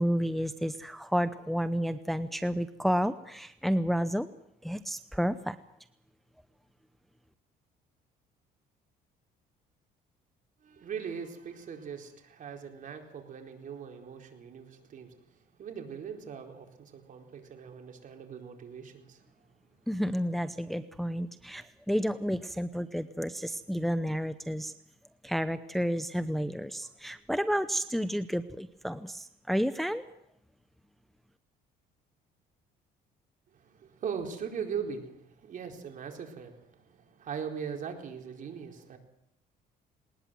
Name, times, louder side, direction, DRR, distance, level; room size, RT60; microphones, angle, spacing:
voice 1, 0.0-4.3 4.6-5.6 19.9-24.7 25.2-30.1, equal, ahead, 11 dB, 0.8 m, -31 dB
voice 2, 10.6-19.3 33.5-39.0, right 7 dB, 50° right, 3 dB, 4.3 m, -40 dB
20.0 x 19.5 x 7.7 m, 0.76 s
cardioid pair, 110°, 17 cm